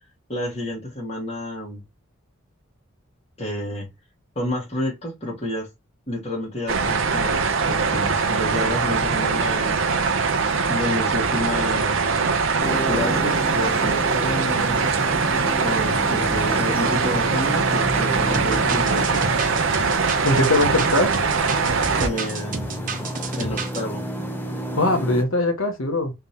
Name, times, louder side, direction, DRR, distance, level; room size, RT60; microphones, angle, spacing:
voice 1, 0.3-1.8 3.4-3.9 4.3-5.7 6.1-9.8 10.7-12.0 12.9-14.9 15.6-19.2 21.9-23.1 23.3-24.0, left 1 dB, 30° left, 1.5 m, -29 dB
sound 1, 6.7-22.1, right 5 dB, 70° right, 0.7 m, -22 dB
sound 2, 12.6-25.2, equal, 10° left, 0.8 m, -31 dB
sound 3, 18.3-23.8, right 4 dB, 40° right, 0.9 m, -31 dB
voice 2, 20.2-21.2 24.8-26.1, left 2 dB, 80° left, 1.3 m, -21 dB
3.6 x 3.3 x 2.8 m
head